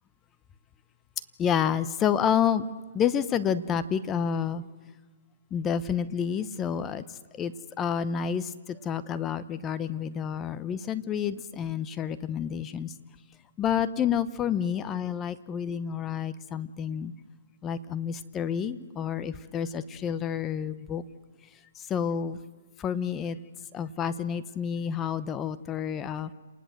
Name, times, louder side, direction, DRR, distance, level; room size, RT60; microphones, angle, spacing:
voice 1, 1.4-2.6 2.9-4.6 5.5-7.0 7.3-7.5 7.8-12.9 13.6-17.1 17.6-21.0 21.8-22.4 22.8-23.4 23.7-26.3, left 8 dB, 20° left, 14 dB, 0.8 m, -29 dB
29.5 x 19.5 x 7.8 m, 1.4 s
hypercardioid pair, 145°, 0 cm